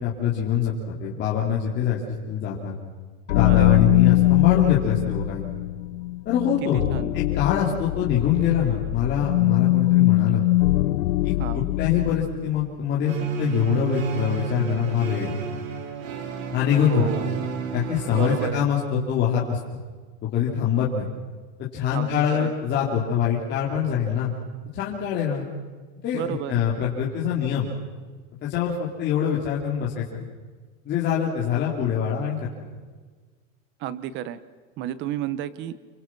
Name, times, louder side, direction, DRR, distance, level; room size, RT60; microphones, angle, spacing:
voice 1, 0.0-2.7 3.3-5.5 6.2-6.8 7.1-10.4 11.2-15.4 16.5-17.2 17.7-19.6 20.3-21.1 21.7-24.3 24.7-25.4 26.0-27.7 28.4-30.3 30.8-32.7, left 8 dB, 25° left, -5 dB, 3.2 m, -24 dB
sound 1, 3.3-12.5, left 18 dB, 85° left, 0.9 m, -22 dB
voice 2, 3.4-3.8 6.6-7.2 11.4-11.7 16.9-17.3 18.1-18.6 21.9-22.5 26.1-26.5 33.8-34.4 34.8-35.8, right 11 dB, 30° right, 16 dB, 1.1 m, -31 dB
sound 2, 13.1-18.5, right 5 dB, 90° right, 3.7 m, -31 dB
29.0 x 26.5 x 6.1 m, 1.4 s
supercardioid pair, 170°, 39 cm